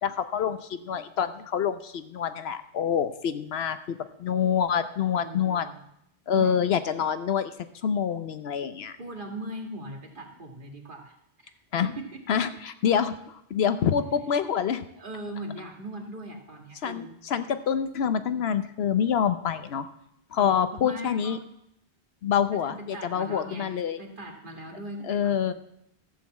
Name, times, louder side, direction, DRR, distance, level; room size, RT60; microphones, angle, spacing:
voice 1, 0.0-5.7 6.3-7.5 7.8-8.9 11.7-11.9 12.3-14.8 16.8-19.9 20.3-21.4 22.2-24.0 25.1-25.5, left 8 dB, 70° left, 11 dB, 0.9 m, -26 dB
voice 2, 5.1-5.8 6.3-6.5 9.0-11.2 11.4-11.5 11.8-12.5 15.0-17.2 20.4-21.4 22.5-25.5, right 1 dB, 50° right, 2 dB, 1.9 m, -40 dB
14.0 x 6.7 x 7.3 m, 0.76 s
omnidirectional pair, 1.1 m